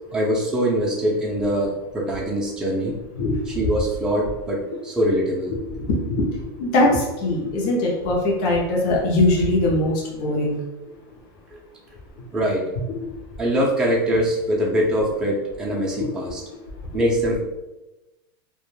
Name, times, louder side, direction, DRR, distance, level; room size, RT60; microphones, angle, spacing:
voice 1, 0.1-2.9 3.5-5.5 11.5-11.6 12.3-12.6 13.4-16.4 16.9-17.4, equal, 5° right, -4 dB, 0.5 m, -23 dB
voice 2, 6.6-10.6 12.9-13.0 16.0-16.1, left 2 dB, 55° left, -3 dB, 0.6 m, -21 dB
2.2 x 2.0 x 3.1 m, 1.0 s
supercardioid pair, 135°, 12 cm